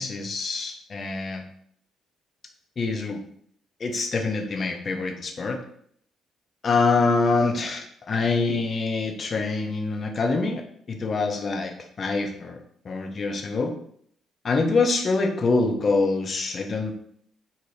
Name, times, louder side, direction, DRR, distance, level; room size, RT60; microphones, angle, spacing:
voice 1, 0.0-1.4 2.8-3.2 3.8-5.6 6.6-11.7 12.0-12.6 12.8-13.7 14.4-16.9, left 3 dB, 40° left, 3 dB, 0.5 m, -25 dB
2.7 x 2.1 x 3.3 m, 0.64 s
figure-of-eight pair, 45°, 0 cm